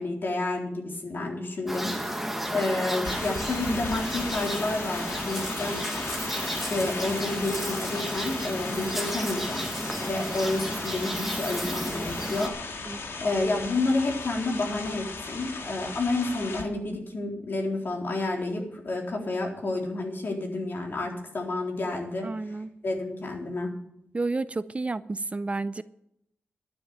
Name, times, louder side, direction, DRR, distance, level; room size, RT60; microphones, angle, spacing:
voice 1, 0.0-2.2 2.5-5.8 6.7-12.5 13.2-22.3 22.8-23.7, left 2 dB, 60° left, 3.8 m, -30 dB
sound 1, 1.7-12.5, equal, 5° right, 1.7 m, -33 dB
sound 2, 3.0-16.6, left 4 dB, 85° left, 2.1 m, -37 dB
voice 2, 22.2-22.7 24.1-25.8, right 3 dB, 30° right, 0.5 m, -31 dB
12.0 x 7.3 x 8.8 m
wide cardioid pair, 80°, 4 cm